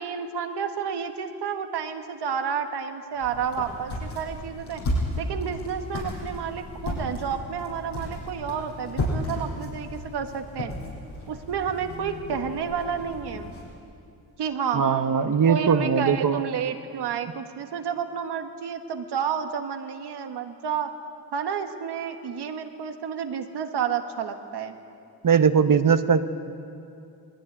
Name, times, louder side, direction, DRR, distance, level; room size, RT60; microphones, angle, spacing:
voice 1, 0.0-4.8 5.2-10.7 11.3-13.5 14.4-14.8 15.4-20.9 21.3-24.8, right 7 dB, 85° right, 6 dB, 1.6 m, -30 dB
sound 1, 3.2-13.7, left 1 dB, 85° left, 7.5 m, -34 dB
voice 2, 14.7-16.4 25.2-26.2, right 6 dB, 55° right, 9 dB, 1.2 m, -20 dB
20.0 x 18.0 x 9.9 m, 2.6 s
supercardioid pair, 50°, 39 cm